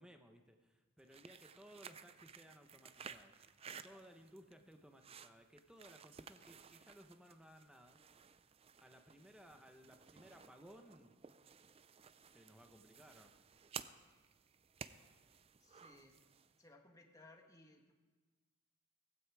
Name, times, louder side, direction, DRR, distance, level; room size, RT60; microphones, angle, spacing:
voice 1, 0.0-3.3 3.6-8.0 8.8-11.1 12.2-13.3, equal, 5° right, 5 dB, 1.1 m, -60 dB
sound 1, 1.0-16.6, right 7 dB, 25° right, 0.4 m, -56 dB
voice 2, 3.6-4.1 10.2-10.6 14.8-15.1 15.6-16.2 16.6-17.9, left 2 dB, 15° left, 3 dB, 1.5 m, -64 dB
16.0 x 16.0 x 4.9 m, 1.3 s
head